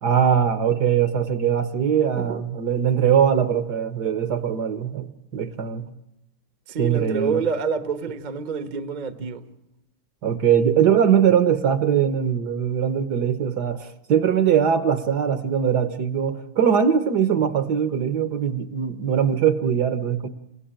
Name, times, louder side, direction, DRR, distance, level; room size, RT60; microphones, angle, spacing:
voice 1, 0.0-5.9 6.8-7.4 10.2-20.3, right 8 dB, 55° right, 1.5 m, -21 dB
voice 2, 6.7-9.4, right 6 dB, 30° right, 0.9 m, -27 dB
28.5 x 16.5 x 8.9 m
omnidirectional pair, 2.3 m